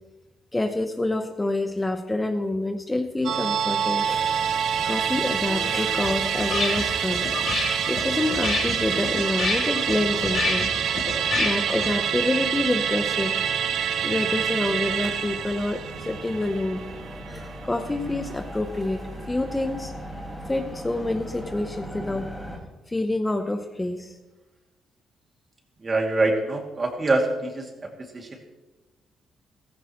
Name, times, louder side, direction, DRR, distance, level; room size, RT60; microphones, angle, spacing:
voice 1, 0.5-4.1 4.8-7.3 7.9-10.7 11.4-13.4 14.0-16.8 17.3-19.9 20.5-22.3 22.9-24.2, left 2 dB, 15° left, 6 dB, 0.9 m, -27 dB
Musical instrument, 3.2-17.9 18.2-18.3, right 8 dB, 65° right, 0.7 m, -27 dB
sound 1, 4.0-22.6, right 1 dB, 5° right, 4.0 m, -40 dB
sound 2, 5.4-12.0, left 4 dB, 55° left, 3.0 m, -30 dB
voice 2, 25.8-28.4, right 2 dB, 30° right, 2 dB, 2.5 m, -25 dB
15.0 x 15.0 x 3.1 m, 1.2 s
cardioid pair, 90°, 0 cm